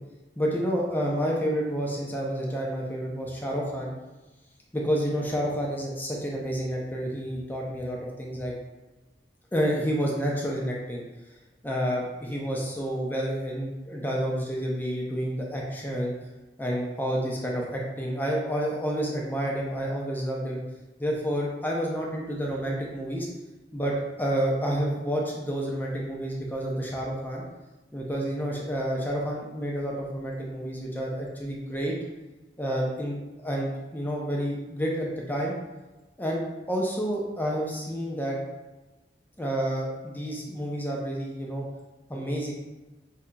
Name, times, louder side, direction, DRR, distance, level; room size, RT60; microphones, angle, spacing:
voice 1, 0.4-3.9 4.7-8.5 9.5-11.0 11.6-16.1 16.6-20.6 21.0-23.3 23.7-27.4 27.9-31.9 32.6-33.2 33.4-35.5 36.2-38.4 39.4-41.6 42.1-42.5, equal, 10° left, -2 dB, 0.5 m, -29 dB
4.9 x 2.8 x 2.2 m, 1.1 s
head